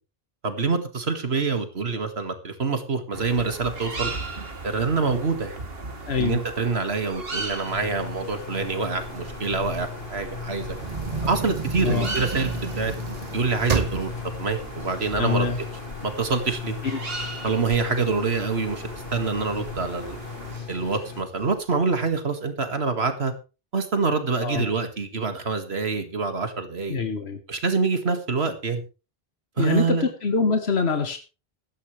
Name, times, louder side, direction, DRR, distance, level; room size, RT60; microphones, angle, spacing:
voice 1, 0.4-4.1 4.6-5.6 6.2-10.8 11.3-12.9 13.3-14.1 14.4-15.5 16.0-16.8 17.4-18.8 19.1-20.2 20.7-23.3 23.7-27.0 27.5-28.8 29.6-30.1, right 4 dB, 90° right, 7 dB, 2.2 m, -26 dB
sound 1, 3.1-20.6, right 3 dB, 70° right, 2.3 m, -38 dB
voice 2, 6.1-6.4 11.8-12.1 15.2-15.6 16.9-17.0 24.4-24.7 26.9-27.4 29.6-31.2, left 4 dB, 85° left, 6 dB, 1.6 m, -24 dB
sound 2, 7.7-21.2, left 6 dB, 60° left, 1.4 m, -37 dB
sound 3, 10.7-15.9 16.4-16.5 16.8-18.9 19.4-19.9 20.5-20.6 20.9-21.0 21.5-22.1, right 5 dB, 40° right, 0.9 m, -31 dB
16.5 x 12.5 x 3.2 m, 0.31 s
omnidirectional pair, 1.0 m